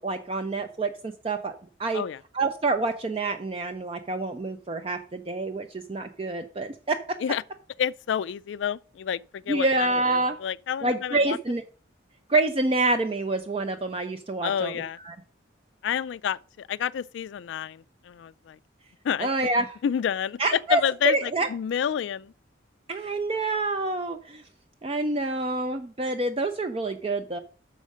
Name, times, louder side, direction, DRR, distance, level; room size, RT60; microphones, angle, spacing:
voice 1, 0.0-2.0 2.3-7.2 9.5-10.4 10.8-11.6 12.3-14.7 15.0-15.2 19.2-19.7 20.4-21.5 22.9-24.4 24.8-27.4, right 2 dB, 30° right, 0.5 m, -27 dB
voice 2, 7.8-11.4 14.4-15.0 15.8-18.6 19.0-19.3 19.8-20.4 20.7-22.3, left 8 dB, 70° left, 0.3 m, -29 dB
6.3 x 5.0 x 6.4 m
head